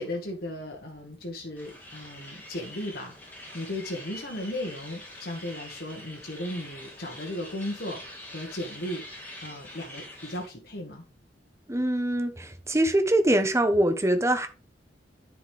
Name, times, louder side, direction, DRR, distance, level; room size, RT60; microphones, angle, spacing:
voice 1, 0.0-9.0 9.4-11.0, left 1 dB, 60° left, 1.6 m, -36 dB
sound 1, 1.6-10.5, left 1 dB, 10° left, 3.5 m, -45 dB
voice 2, 11.7-14.5, right 1 dB, 15° right, 1.1 m, -23 dB
9.7 x 5.1 x 3.5 m
head